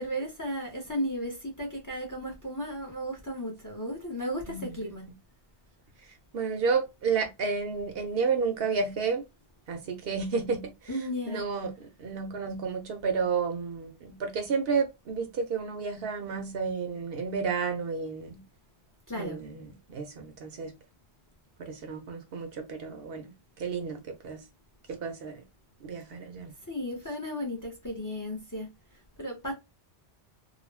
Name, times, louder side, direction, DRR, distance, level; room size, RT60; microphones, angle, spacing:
voice 1, 0.0-5.0 10.9-11.4 19.1-19.4 26.7-28.7 29.2-29.5, equal, 20° left, 0.6 m, -34 dB
voice 2, 6.3-9.2 9.7-10.9 11.3-18.4 19.2-20.7 21.6-23.3 23.6-24.4 24.9-25.4 25.8-26.5, right 5 dB, 65° right, 0.8 m, -31 dB
2.4 x 2.0 x 3.2 m
omnidirectional pair, 1.1 m